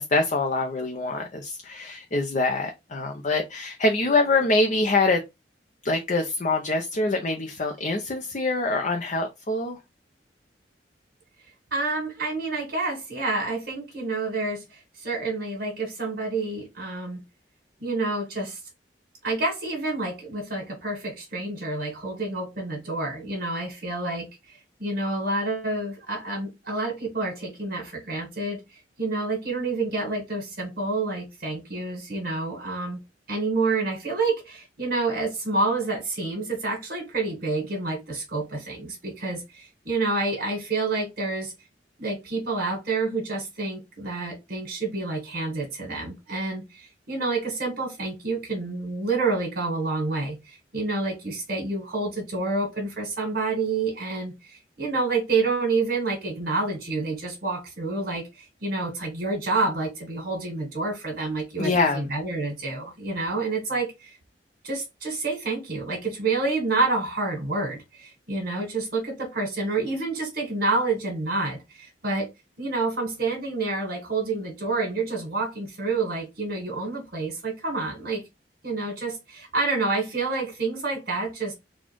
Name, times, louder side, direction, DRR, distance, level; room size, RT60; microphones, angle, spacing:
voice 1, 0.0-5.2 5.8-9.8 61.6-62.1, left 2 dB, 45° left, 0.7 m, -24 dB
voice 2, 11.7-17.2 17.8-18.6 19.2-33.0 33.3-41.5 42.0-64.2 64.6-72.3 72.6-78.2 78.6-81.5, right 3 dB, 60° right, 1.7 m, -28 dB
4.2 x 2.4 x 4.5 m
head